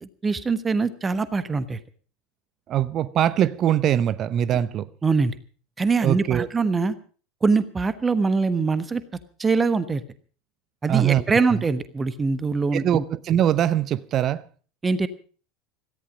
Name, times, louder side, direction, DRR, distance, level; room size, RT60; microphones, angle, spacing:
voice 1, 0.0-1.8 5.0-5.4 5.8-6.9 7.4-9.0 9.4-10.0 10.8-13.0 14.8-15.1, right 4 dB, 20° right, 1.3 m, -23 dB
voice 2, 2.7-4.9 6.0-6.5 10.9-11.6 12.7-14.4, right 10 dB, 40° right, 0.8 m, -22 dB
17.5 x 14.0 x 5.1 m
figure-of-eight pair, 75°, 0 cm